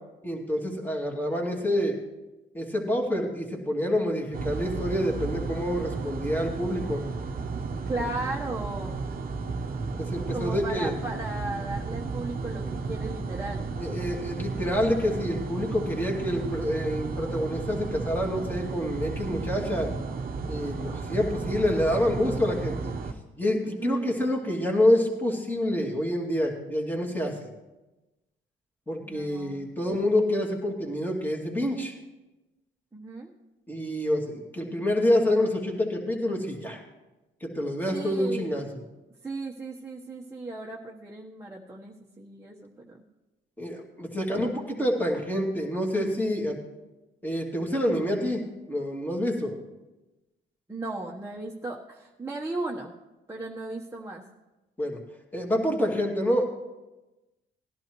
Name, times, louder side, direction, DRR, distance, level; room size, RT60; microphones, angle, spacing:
voice 1, 0.2-2.0 2.5-7.0 10.0-10.9 13.8-19.9 20.5-22.9 23.4-27.5 28.9-31.9 33.7-36.8 37.4-38.7 43.6-46.6 47.2-49.6 54.8-55.0 55.3-56.4, left 1 dB, 10° left, 0 dB, 2.4 m, -27 dB
sound 1, 4.3-23.1, right 4 dB, 45° right, 1.0 m, -33 dB
voice 2, 7.9-9.0 10.3-13.7 23.6-24.1 29.0-29.7 32.9-33.3 37.9-38.5 39.2-43.0 50.7-52.9 53.3-54.2, right 2 dB, 15° right, -4 dB, 1.1 m, -36 dB
18.0 x 11.0 x 3.1 m, 1.1 s
cardioid pair, 90°, 20 cm